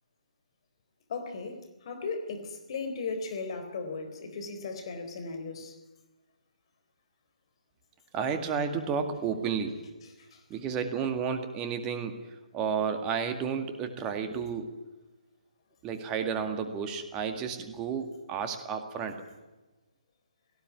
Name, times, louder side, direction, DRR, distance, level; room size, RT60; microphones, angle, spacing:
voice 1, 1.1-5.8 10.2-10.4, left 4 dB, 45° left, 7 dB, 4.1 m, -37 dB
voice 2, 8.1-9.8 10.5-12.2 12.5-14.7 15.8-19.2, right 6 dB, 20° right, 7 dB, 2.0 m, -32 dB
18.0 x 16.0 x 9.6 m, 1.1 s
figure-of-eight pair, 140°, 4 cm